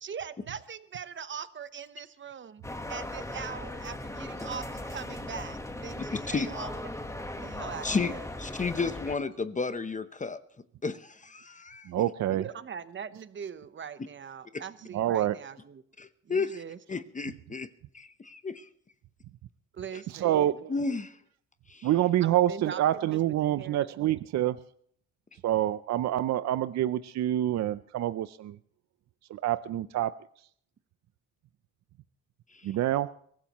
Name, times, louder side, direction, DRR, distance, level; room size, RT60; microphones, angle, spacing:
voice 1, 0.0-2.6 2.9-6.9 7.4-8.3 12.3-15.8 16.2-16.8 19.7-20.6 22.2-22.8 23.1-24.1, right 7 dB, 40° right, 13 dB, 1.0 m, -41 dB
sound 1, 2.6-9.2, left 1 dB, 10° left, 1.3 m, -38 dB
voice 2, 6.1-6.5 7.8-8.1 8.4-10.4 10.8-11.9 16.0-16.6 16.9-17.7 17.9-18.7 19.9-20.0 20.7-21.2 21.7-21.9 32.5-32.7, left 4 dB, 25° left, 11 dB, 0.8 m, -32 dB
voice 3, 11.9-12.4 14.9-15.4 20.1-20.7 21.8-24.6 25.4-28.6 29.3-30.1 32.6-33.1, right 13 dB, 65° right, 14 dB, 0.6 m, -27 dB
23.0 x 15.0 x 3.0 m, 0.62 s
cardioid pair, 90°, 30 cm